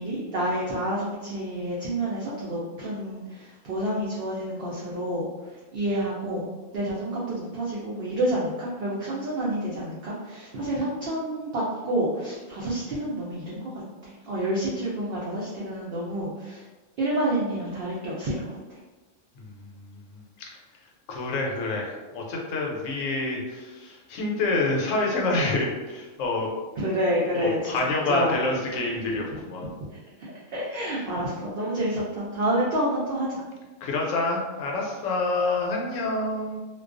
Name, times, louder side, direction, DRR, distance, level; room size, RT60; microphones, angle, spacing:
voice 1, 0.0-5.3 5.7-6.5 6.7-13.7 14.0-16.6 17.0-18.6 26.8-27.8 28.1-28.3 30.2-33.4, right 1 dB, 65° right, -6 dB, 0.6 m, -28 dB
voice 2, 19.4-20.2 21.1-26.5 27.3-29.7 33.8-36.6, left 2 dB, 75° left, -1 dB, 0.9 m, -27 dB
2.3 x 2.2 x 2.4 m, 1.2 s
omnidirectional pair, 1.4 m